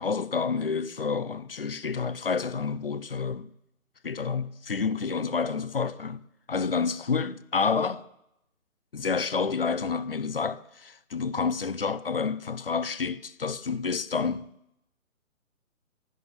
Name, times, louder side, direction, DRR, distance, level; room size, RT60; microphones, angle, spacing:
voice 1, 0.0-3.5 4.0-6.2 6.5-8.0 8.9-14.5, left 5 dB, 45° left, 0.5 m, -29 dB
16.0 x 5.8 x 9.5 m
hypercardioid pair, 160°, 43 cm